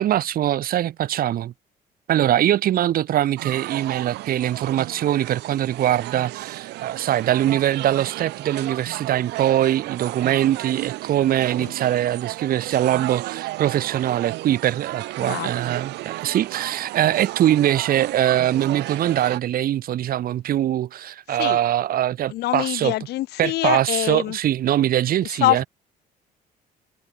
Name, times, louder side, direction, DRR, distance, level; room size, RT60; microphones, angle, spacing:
voice 1, 0.0-1.5 2.1-22.9 23.4-25.6, right 12 dB, 60° right, 1.6 m, -22 dB
sound 1, 3.4-19.4, right 19 dB, 85° right, 2.7 m, -33 dB
voice 2, 15.2-15.6 21.3-21.6 22.3-24.4 25.4-25.7, left 16 dB, 75° left, 2.1 m, -24 dB
cardioid pair, 110°, 17 cm